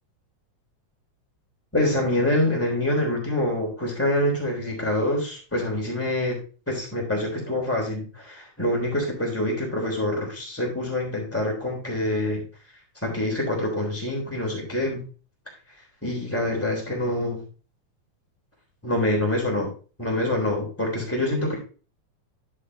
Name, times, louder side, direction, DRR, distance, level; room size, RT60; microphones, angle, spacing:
voice 1, 1.7-6.4 6.7-12.4 13.0-15.0 16.0-17.4 18.8-19.7 20.0-21.6, left 1 dB, 5° left, -1 dB, 3.1 m, -25 dB
10.5 x 6.6 x 2.7 m, 0.37 s
omnidirectional pair, 3.4 m